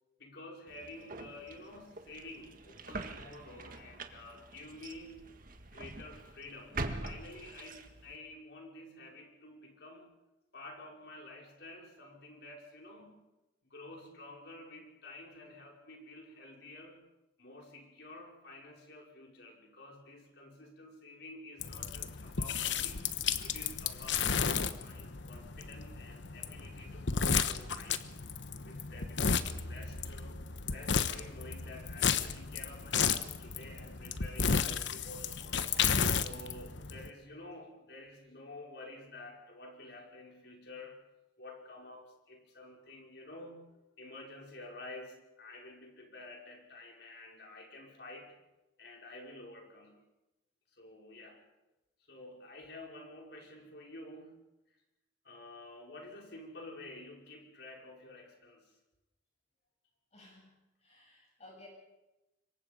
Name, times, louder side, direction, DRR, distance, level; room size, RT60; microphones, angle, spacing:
voice 1, 0.2-5.2 5.7-10.1 10.5-13.2 13.6-17.0 17.4-23.0 23.4-28.0 28.6-30.4 30.7-35.7 36.2-41.0 41.4-48.4 48.8-50.0 50.7-51.4 52.1-54.4 55.2-58.7, left 2 dB, 60° left, 0 dB, 5.5 m, -50 dB
sound 1, 0.7-8.2, right 2 dB, 50° right, 1.8 m, -44 dB
sound 2, 21.6-37.1, left 6 dB, 80° left, 1.1 m, -33 dB
voice 2, 60.1-61.7, left 2 dB, 35° left, -1 dB, 7.7 m, -57 dB
26.0 x 23.0 x 5.3 m, 1.0 s
head